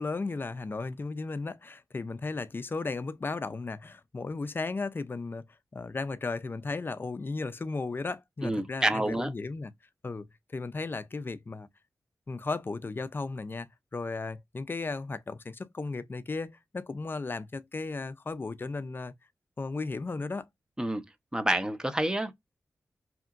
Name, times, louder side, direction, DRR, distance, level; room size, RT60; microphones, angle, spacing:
voice 1, 0.0-5.4 5.7-9.7 10.0-11.7 12.3-19.1 19.6-20.5, left 3 dB, 40° left, 0.4 m, -35 dB
voice 2, 8.4-9.3 20.8-21.1 21.3-22.3, right 1 dB, 15° right, 0.6 m, -28 dB
2.9 x 2.4 x 2.4 m
cardioid pair, 60°, 6 cm